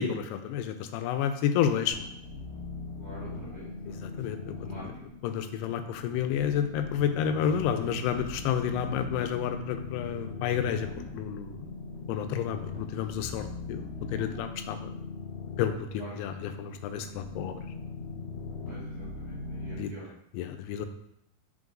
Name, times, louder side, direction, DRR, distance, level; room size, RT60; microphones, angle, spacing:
voice 1, 0.0-2.0 4.2-4.4 4.8-4.9 5.2-10.9 11.1-11.7 12.1-14.9 15.6-17.6 19.8-19.9 20.3-20.9, left 8 dB, 85° left, 8 dB, 2.6 m, -30 dB
sound 1, 1.9-19.8, left 3 dB, 65° left, 4.1 m, -40 dB
voice 2, 3.0-4.8 16.0-16.1 18.7-20.1, right 1 dB, 35° right, -9 dB, 1.6 m, -47 dB
7.7 x 5.3 x 2.5 m, 0.79 s
omnidirectional pair, 4.7 m